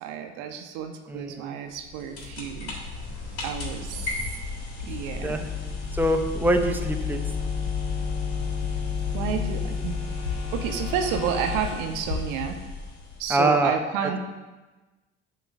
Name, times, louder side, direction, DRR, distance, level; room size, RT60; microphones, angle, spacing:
voice 1, 0.0-2.7 3.4-4.3 4.8-5.5 9.1-10.0 10.5-12.6 13.2-14.2, right 8 dB, 65° right, 5 dB, 0.8 m, -30 dB
voice 2, 1.1-1.5 5.2-5.4 5.9-7.2 13.3-13.7 14.0-14.2, right 1 dB, 5° right, 5 dB, 0.7 m, -24 dB
sound 1, 1.7-13.5, left 3 dB, 65° left, 1.7 m, -36 dB
sound 2, 5.1-11.7, left 6 dB, 35° left, 1.8 m, -31 dB
8.8 x 3.0 x 6.0 m, 1.2 s
figure-of-eight pair, 50°, 33 cm